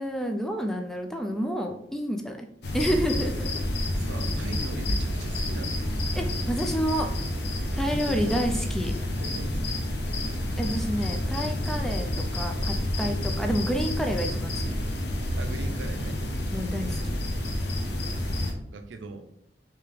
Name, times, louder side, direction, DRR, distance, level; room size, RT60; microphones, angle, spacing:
voice 1, 0.0-2.5 2.7-3.6 6.1-7.1 7.7-8.9 10.6-12.1 12.3-14.6 16.5-17.1, equal, ahead, 3 dB, 0.3 m, -29 dB
sound 1, 2.6-18.5, left 1 dB, 65° left, 0.7 m, -29 dB
voice 2, 3.9-5.8 7.9-8.3 9.2-9.9 15.4-16.5 18.3-18.4 18.7-19.2, right 3 dB, 90° right, 7 dB, 0.5 m, -40 dB
3.3 x 3.2 x 3.4 m, 0.71 s
head